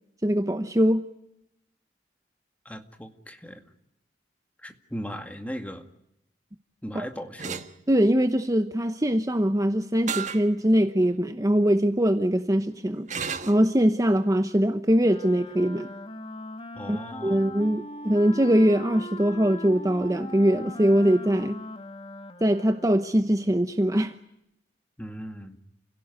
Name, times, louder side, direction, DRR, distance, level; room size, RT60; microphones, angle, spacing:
voice 1, 0.2-1.0 6.9-7.1 7.9-13.1 13.5-15.9 16.9-21.6 22.4-24.1, equal, 20° right, 0.9 m, -22 dB
voice 2, 2.7-3.6 4.6-5.9 6.8-7.6 16.7-17.6 25.0-25.6, equal, 10° left, 2.1 m, -38 dB
sound 1, 7.4-7.7 10.1-10.4 11.0-11.1 13.1-13.6, right 6 dB, 45° right, 1.4 m, -32 dB
Wind instrument woodwind instrument, 15.0-23.2, left 2 dB, 30° left, 1.4 m, -40 dB
29.0 x 17.0 x 9.6 m
head